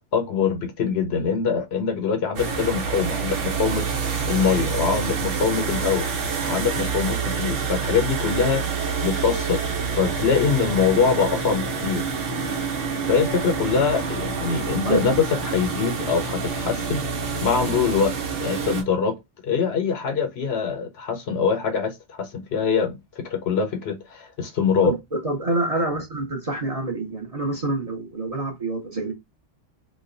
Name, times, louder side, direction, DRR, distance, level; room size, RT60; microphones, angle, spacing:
voice 1, 0.1-3.9 4.3-6.1 6.5-8.6 9.0-9.6 9.9-12.0 13.1-17.0 17.4-18.1 18.4-19.2 19.4-24.9, left 6 dB, 65° left, 0.8 m, -23 dB
sound 1, 2.4-18.8, right 5 dB, 80° right, 1.2 m, -27 dB
voice 2, 25.2-29.1, right 2 dB, 30° right, 0.9 m, -26 dB
3.1 x 2.2 x 3.7 m
omnidirectional pair, 1.3 m